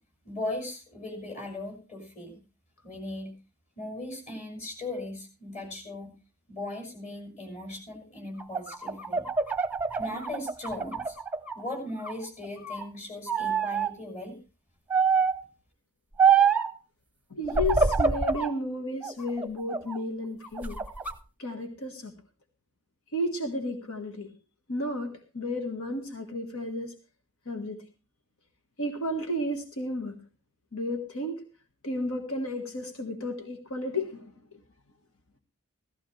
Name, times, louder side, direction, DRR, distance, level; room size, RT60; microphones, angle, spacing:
voice 1, 0.2-2.4 2.8-3.3 3.8-6.1 6.5-9.2 10.0-11.2 11.5-14.4, left 1 dB, 35° left, 3 dB, 6.5 m, -38 dB
sound 1, 8.4-11.6 12.0-12.9 13.3-13.9 14.9-15.4 16.2-16.7 17.5-18.5 19.0-20.0 20.4-21.1, right 5 dB, 5° right, 0.8 m, -26 dB
voice 2, 17.3-20.8 21.4-22.1 23.1-24.3 24.7-27.0 27.4-27.8 28.8-30.2 30.7-31.4 31.8-34.3, left 1 dB, 85° left, 5 dB, 1.7 m, -32 dB
16.5 x 14.5 x 3.3 m, 0.32 s
head